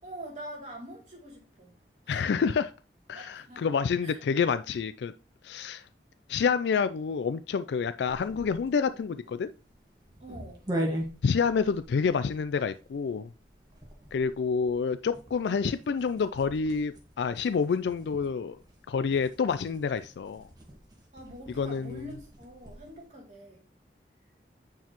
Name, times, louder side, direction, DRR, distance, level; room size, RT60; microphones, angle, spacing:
voice 1, 0.0-1.8 2.0-2.3 3.1-3.7 4.0-4.2 10.2-10.6 21.1-23.6, right 1 dB, 40° right, 2.7 m, -44 dB
voice 2, 2.1-2.7 3.1-5.1 5.4-5.8 6.3-9.5 11.2-13.3 14.1-18.6 18.9-20.4 21.6-22.0, left 5 dB, 75° left, 0.3 m, -28 dB
sound 1, 8.1-23.0, right 1 dB, 25° right, 1.6 m, -42 dB
9.1 x 4.6 x 3.0 m
head